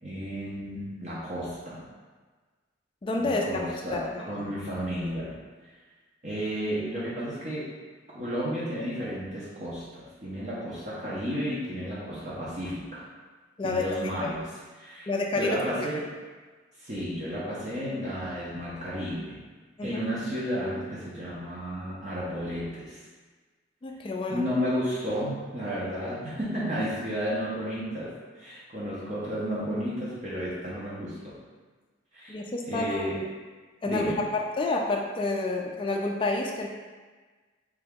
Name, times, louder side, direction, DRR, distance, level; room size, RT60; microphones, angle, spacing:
voice 1, 0.0-1.8 3.2-5.3 6.2-7.7 8.1-13.0 13.6-14.4 14.8-15.1 15.3-16.1 16.8-19.4 19.8-23.0 24.3-31.3 32.1-33.2 33.8-34.2, equal, 40° right, -8 dB, 0.7 m, -32 dB
voice 2, 3.0-3.6 3.9-4.0 4.4-4.5 13.6-14.3 15.1-15.6 19.8-20.0 23.8-24.4 32.3-33.1 33.8-34.1 34.6-36.7, left 2 dB, 25° left, 0 dB, 0.3 m, -29 dB
3.4 x 2.9 x 3.5 m, 1.4 s
head